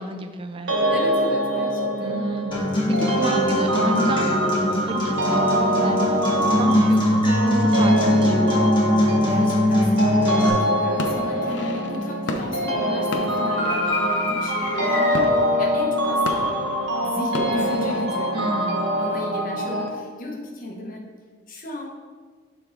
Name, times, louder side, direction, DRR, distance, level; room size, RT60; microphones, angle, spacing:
voice 1, 0.0-0.8 2.0-2.5 3.0-8.7 18.3-18.9, right 2 dB, 30° right, 7 dB, 0.4 m, -32 dB
sound 1, 0.7-19.9, equal, 65° right, 1.0 m, -24 dB
voice 2, 0.9-2.3 6.6-6.8 9.3-16.6 17.0-18.3 19.0-21.0 21.5-21.9, left 1 dB, 45° left, -1 dB, 1.0 m, -35 dB
Acoustic guitar, 2.5-10.5, left 1 dB, 25° left, 1.4 m, -21 dB
sound 2, 10.2-10.6 11.0-18.0, left 2 dB, 70° left, 0.6 m, -32 dB
6.9 x 3.4 x 4.7 m, 1.5 s
head